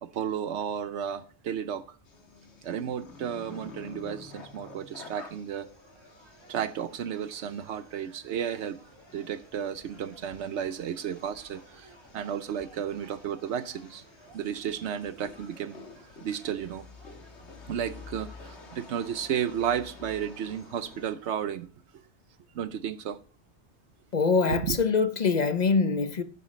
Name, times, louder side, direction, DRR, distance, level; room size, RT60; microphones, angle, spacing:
voice 1, 0.0-2.0 2.6-5.7 6.5-8.8 9.1-14.0 14.3-15.8 16.2-16.9 17.7-22.0 22.5-23.2 24.5-24.8, right 8 dB, 80° right, 1.0 m, -33 dB
sound 1, 2.0-21.1, left 3 dB, 75° left, 1.9 m, -50 dB
sound 2, 5.2-21.3, right 1 dB, 25° right, 3.1 m, -58 dB
voice 2, 24.1-26.2, left 4 dB, 45° left, 0.7 m, -24 dB
11.5 x 9.8 x 3.2 m
omnidirectional pair, 1.2 m